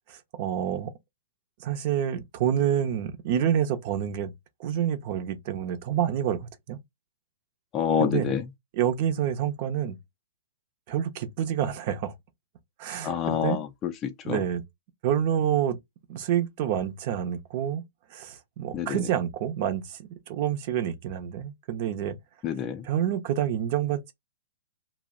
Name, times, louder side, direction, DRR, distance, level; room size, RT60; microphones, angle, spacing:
voice 1, 0.1-0.9 1.6-4.3 4.6-6.8 8.0-8.3 8.7-10.0 10.9-12.1 12.8-13.6 14.2-14.6 15.0-15.8 16.1-17.8 18.1-22.2 22.8-24.1, right 9 dB, 45° right, 0.6 m, -28 dB
voice 2, 7.7-8.4 13.0-14.4 18.7-19.0 22.4-22.9, left 8 dB, 25° left, 0.4 m, -27 dB
2.4 x 2.1 x 3.5 m
hypercardioid pair, 145°, 0 cm